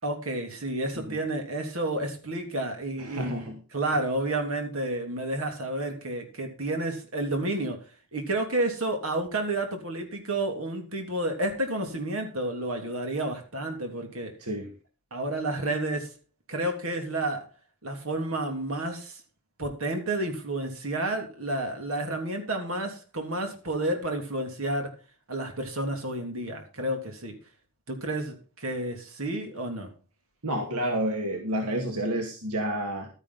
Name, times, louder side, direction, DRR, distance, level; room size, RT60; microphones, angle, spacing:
voice 1, 0.0-7.8 8.1-14.3 15.1-16.1 16.5-17.5 17.8-19.2 19.6-24.9 25.3-27.4 27.9-29.9, right 1 dB, 65° right, 4 dB, 3.4 m, -30 dB
voice 2, 3.0-3.6 14.4-14.7 30.4-33.1, right 1 dB, 80° right, 3 dB, 2.2 m, -30 dB
12.5 x 10.5 x 4.2 m, 0.33 s
head